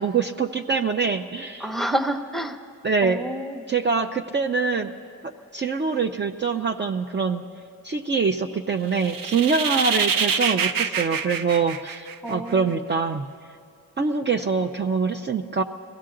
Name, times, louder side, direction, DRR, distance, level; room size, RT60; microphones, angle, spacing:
voice 1, 0.0-1.7 2.8-3.2 3.7-4.9 5.2-7.4 7.8-13.2 14.0-15.6, right 5 dB, 30° right, 5 dB, 0.6 m, -24 dB
voice 2, 1.6-2.6 3.0-3.7 12.2-12.8, right 1 dB, ahead, 6 dB, 0.8 m, -28 dB
sound 1, 8.9-12.5, right 6 dB, 80° right, 0.7 m, -26 dB
22.0 x 16.5 x 3.8 m, 2.5 s
cardioid pair, 80°, 34 cm